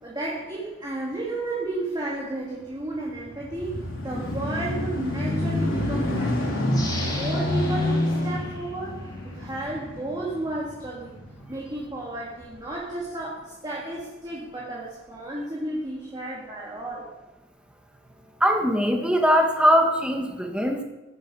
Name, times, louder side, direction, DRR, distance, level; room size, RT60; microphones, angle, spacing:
voice 1, 0.0-6.5 6.9-11.1 11.5-17.1, right 2 dB, 20° right, -4 dB, 2.4 m, -33 dB
sound 1, 3.0-11.8 12.4-12.5, left 1 dB, 75° left, 4.0 m, -28 dB
sound 2, 6.7-9.4 9.9-10.0, left 2 dB, 20° left, 2.5 m, -39 dB
voice 2, 18.4-20.8, equal, 5° right, 2 dB, 1.7 m, -21 dB
16.0 x 11.0 x 5.6 m, 1.1 s
head